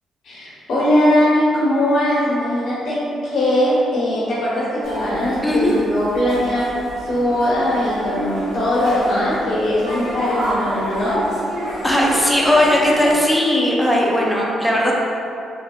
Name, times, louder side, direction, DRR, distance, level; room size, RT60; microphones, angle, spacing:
voice 1, 0.2-6.7 7.1-11.2, left 1 dB, 70° left, -10 dB, 1.2 m, -20 dB
sound 1, 4.8-13.1, equal, 75° right, 1.4 m, -29 dB
voice 2, 5.4-5.8 11.8-14.9, left 1 dB, 10° left, -3 dB, 0.5 m, -17 dB
3.4 x 2.7 x 2.2 m, 2.5 s
cardioid pair, 90°, 0 cm